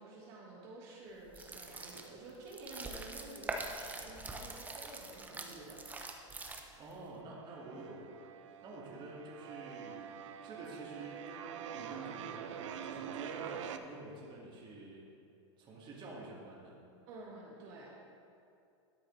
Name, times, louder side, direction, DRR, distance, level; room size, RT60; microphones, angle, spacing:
voice 1, 0.0-5.8 17.1-17.9, right 2 dB, 55° right, -4 dB, 1.7 m, -50 dB
sound 1, 1.3-6.9, right 2 dB, 10° right, 0.7 m, -44 dB
sound 2, 5.5-6.3 6.6-13.8, right 8 dB, 75° right, 0.6 m, -46 dB
voice 2, 6.8-8.2 8.6-10.1 10.4-15.1 15.6-16.8, right 2 dB, 30° right, -4 dB, 2.0 m, -49 dB
12.5 x 6.4 x 3.2 m, 2.5 s
hypercardioid pair, 120°, 16 cm